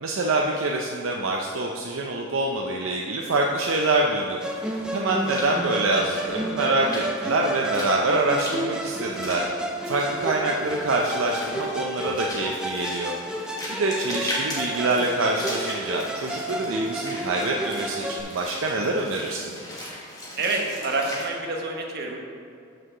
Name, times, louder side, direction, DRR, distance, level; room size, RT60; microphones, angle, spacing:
voice 1, 0.0-4.4 4.9-9.5 9.9-13.1 13.7-19.6, right 2 dB, 70° right, 0 dB, 0.5 m, -25 dB
Walk footsteps / Splash splatter, 3.6-21.3, left 1 dB, 20° left, 1.4 m, -39 dB
Musical instrument, 4.4-18.2, right 1 dB, 5° right, 0.4 m, -31 dB
voice 2, 20.4-22.2, right 3 dB, 50° right, 0 dB, 1.1 m, -27 dB
6.2 x 4.6 x 6.4 m, 2.5 s
head